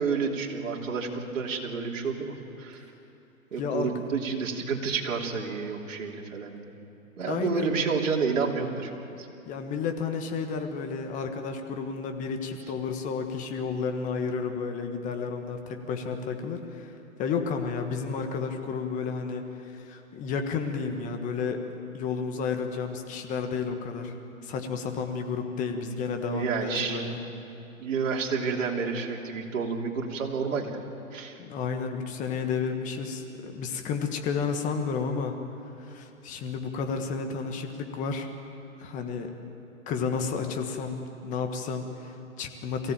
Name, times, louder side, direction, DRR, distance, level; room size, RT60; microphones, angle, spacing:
voice 1, 0.0-2.8 3.5-6.8 7.2-9.3 26.3-27.1 27.8-30.8 31.1-31.4, right 5 dB, 60° right, 0 dB, 3.3 m, -30 dB
voice 2, 3.6-3.9 7.3-7.7 9.4-21.6 21.9-24.1 24.4-27.2 31.4-35.3 35.8-38.3 38.8-39.3 39.9-42.9, left 5 dB, 20° left, 5 dB, 1.5 m, -31 dB
23.0 x 16.0 x 9.0 m, 2.9 s
hypercardioid pair, 145°, 43 cm